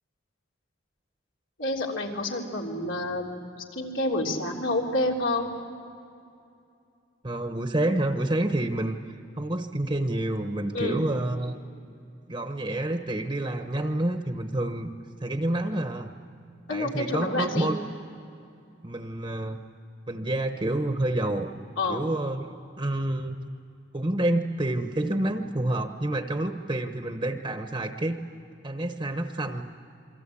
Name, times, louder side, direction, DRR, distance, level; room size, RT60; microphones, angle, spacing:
voice 1, 1.6-3.5 3.7-5.5 10.7-11.0 16.7-17.7 21.8-22.0, left 2 dB, 90° left, -1 dB, 3.4 m, -28 dB
voice 2, 7.2-11.5 12.3-14.9 15.2-16.1 16.7-17.8 18.8-19.6 20.1-21.5 21.9-23.4 23.9-28.2 28.6-29.6, right 1 dB, 25° right, 6 dB, 1.0 m, -28 dB
28.5 x 23.0 x 8.6 m, 2.5 s
head